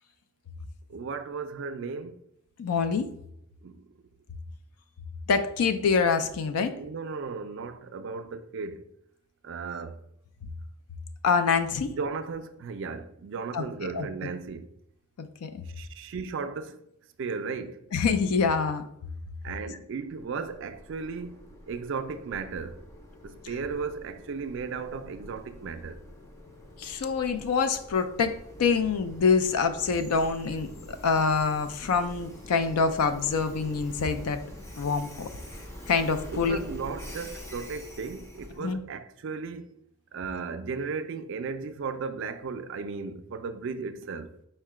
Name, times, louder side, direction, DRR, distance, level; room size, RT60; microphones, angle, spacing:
voice 1, 0.9-2.2 3.6-3.9 6.8-8.9 9.4-10.0 11.9-14.7 15.7-16.8 17.2-17.8 19.4-22.8 23.2-26.0 36.3-39.8 40.1-44.4, right 5 dB, 55° right, 0.3 m, -35 dB
voice 2, 2.6-3.1 5.3-6.7 11.2-11.9 13.5-14.3 15.2-15.6 17.9-18.9 26.8-34.4 34.8-35.3 35.9-36.6 38.6-38.8, left 5 dB, 85° left, 0.4 m, -26 dB
Train, 19.9-38.7, equal, 15° left, 0.4 m, -45 dB
4.6 x 2.1 x 4.7 m
head